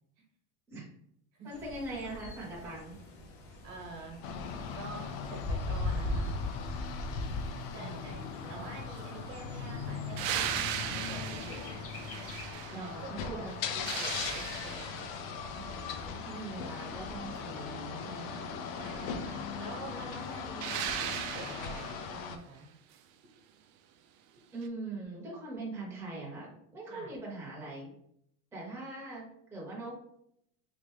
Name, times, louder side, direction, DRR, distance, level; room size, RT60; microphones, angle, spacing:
voice 1, 1.4-2.9 7.7-8.6 12.7-13.5 15.5-18.5 24.5-27.9 28.5-30.0, right 2 dB, 5° right, -5 dB, 0.7 m, -42 dB
Bird, 1.5-12.5, left 2 dB, 35° left, 0.5 m, -40 dB
voice 2, 3.4-4.2 4.7-6.4 7.3-7.5 7.7-11.9 12.7-13.4 13.7-15.1 18.8-22.7 26.8-27.1, right 3 dB, 55° right, 1 dB, 1.1 m, -47 dB
sound 1, 4.2-22.4, left 6 dB, 75° left, 0.6 m, -39 dB
sound 2, 10.2-13.1 13.5-15.2 20.6-22.1 24.6-24.7, right 9 dB, 75° right, 0.5 m, -37 dB
3.2 x 2.5 x 3.1 m, 0.73 s
supercardioid pair, 155°, 41 cm